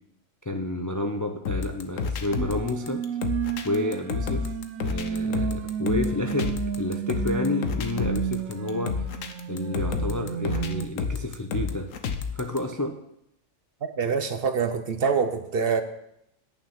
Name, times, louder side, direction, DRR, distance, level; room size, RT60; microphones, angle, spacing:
voice 1, 0.5-3.0 3.6-4.5 4.8-9.0 9.5-11.9 12.3-12.9, left 2 dB, 20° left, 5 dB, 0.5 m, -30 dB
sound 1, 1.5-12.6, left 5 dB, 85° left, 1.3 m, -30 dB
sound 2, 2.4-10.9, right 7 dB, 85° right, 1.2 m, -31 dB
voice 2, 14.0-15.8, right 5 dB, 50° right, 9 dB, 0.9 m, -25 dB
10.0 x 6.0 x 7.3 m, 0.80 s
omnidirectional pair, 1.3 m